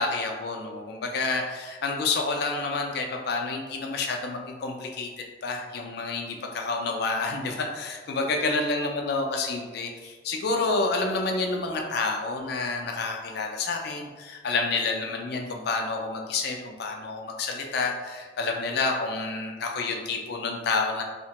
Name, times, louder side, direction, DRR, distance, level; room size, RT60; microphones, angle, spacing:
voice 1, 0.0-5.1 5.4-21.0, left 3 dB, 60° left, 2 dB, 0.4 m, -29 dB
2.7 x 2.1 x 2.8 m, 1.3 s
head